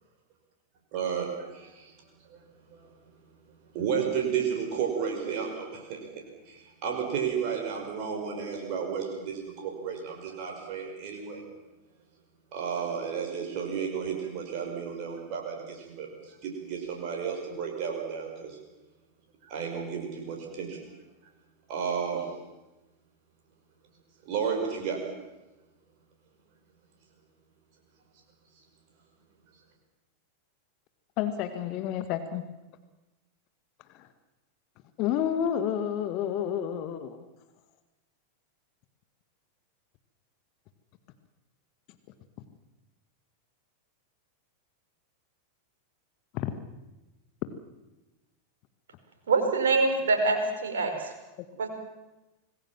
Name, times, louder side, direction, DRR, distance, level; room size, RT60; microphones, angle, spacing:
voice 1, 0.9-1.9 2.3-2.4 2.7-2.9 3.7-6.1 6.5-11.4 12.5-18.6 19.5-20.8 21.7-22.3 24.2-25.0, right 7 dB, 45° right, 1 dB, 5.9 m, -32 dB
voice 2, 31.2-32.4 33.9-34.1 35.0-37.2 46.3-46.5 51.4-51.5, left 9 dB, 40° left, 10 dB, 1.8 m, -30 dB
voice 3, 49.3-51.1 51.6-51.7, right 3 dB, 65° right, 4 dB, 5.2 m, -25 dB
26.5 x 20.0 x 7.4 m, 1.1 s
figure-of-eight pair, 90°, 0 cm